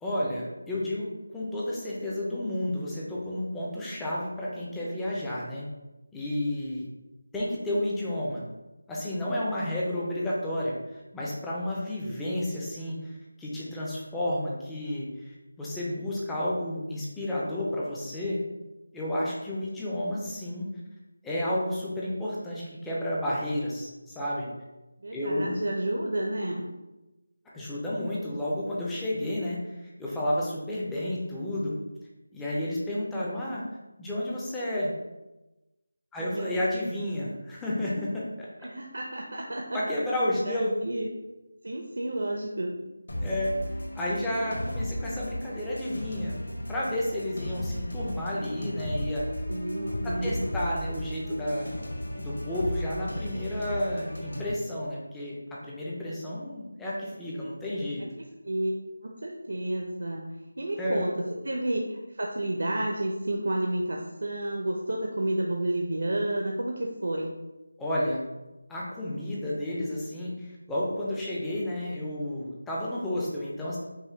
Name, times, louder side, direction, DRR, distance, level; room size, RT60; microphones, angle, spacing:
voice 1, 0.0-5.6 6.1-6.8 7.3-8.4 8.9-18.4 18.9-20.7 21.2-24.5 25.1-25.6 27.5-29.7 30.0-31.7 32.3-33.7 34.0-34.9 36.1-38.5 39.7-40.8 43.2-43.6 43.9-46.3 46.7-49.3 50.0-51.7 52.2-58.1 60.8-61.2 67.8-68.2 68.7-73.8, left 1 dB, 5° left, -7 dB, 0.4 m, -31 dB
voice 2, 25.0-26.6 36.2-36.5 38.6-39.8 40.4-41.1 41.6-42.7 49.5-50.5 58.4-58.7 59.0-67.4, right 1 dB, 50° right, 0 dB, 0.5 m, -31 dB
sound 1, 43.1-54.5, equal, 70° left, 1.5 m, -35 dB
5.5 x 2.1 x 4.3 m, 1.0 s
figure-of-eight pair, 180°, 0 cm